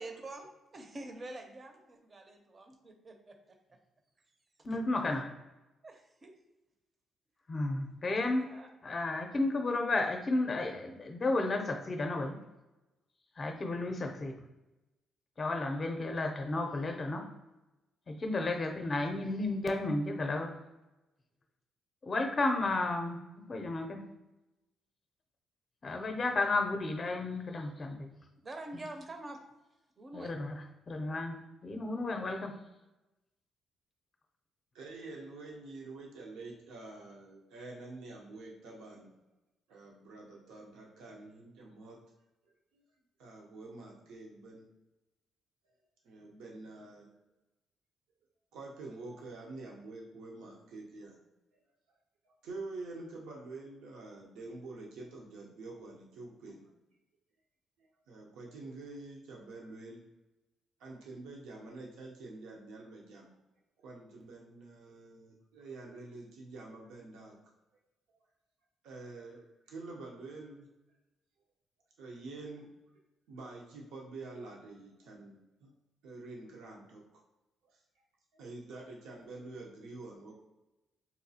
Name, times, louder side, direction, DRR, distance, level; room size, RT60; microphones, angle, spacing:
voice 1, 0.0-3.4 4.7-4.8 5.8-6.3 8.4-8.7 28.4-29.4 30.0-30.4, right 2 dB, 35° right, 5 dB, 0.5 m, -46 dB
voice 2, 4.6-5.3 7.5-8.4 8.8-12.4 13.4-14.3 15.4-17.2 18.1-20.5 22.0-23.2 23.5-24.0 25.8-28.1 30.1-30.6 30.9-31.4 31.6-32.5, left 2 dB, 35° left, 4 dB, 0.5 m, -32 dB
voice 3, 34.7-39.1 39.7-42.0 43.2-44.6 46.0-47.1 48.5-51.2 52.2-56.7 58.1-60.1 60.8-63.4 63.8-67.4 68.1-68.2 68.8-70.6 72.0-72.7 73.3-75.7 76.0-77.0 77.7-77.8 78.3-80.3, right 3 dB, 90° right, -1 dB, 0.6 m, -47 dB
4.0 x 2.3 x 2.7 m, 1.0 s
cardioid pair, 90°, 0 cm